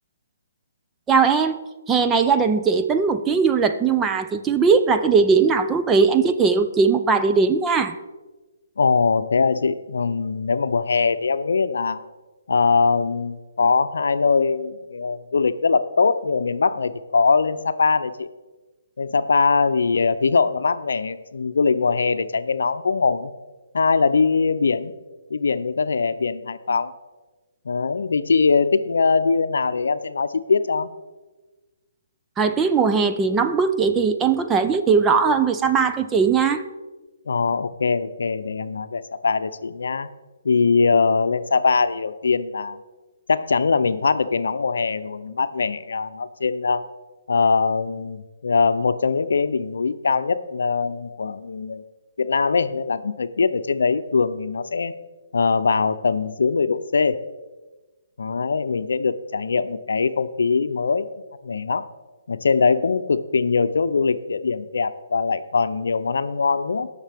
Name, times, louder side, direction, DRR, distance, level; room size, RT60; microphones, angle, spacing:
voice 1, 1.1-8.0 32.4-36.6, right 5 dB, 10° right, 8 dB, 0.5 m, -19 dB
voice 2, 8.8-12.0 12.5-18.3 19.0-23.3 23.7-24.9 25.3-26.9 27.7-30.9 37.3-40.1 40.4-42.8 43.3-46.8 47.3-51.8 52.2-54.9 55.3-57.2 58.2-61.1 61.4-61.9 62.3-66.9, left 4 dB, 75° left, 11 dB, 0.6 m, -21 dB
19.0 x 6.6 x 3.6 m, 1.2 s
hypercardioid pair, 155°, 0 cm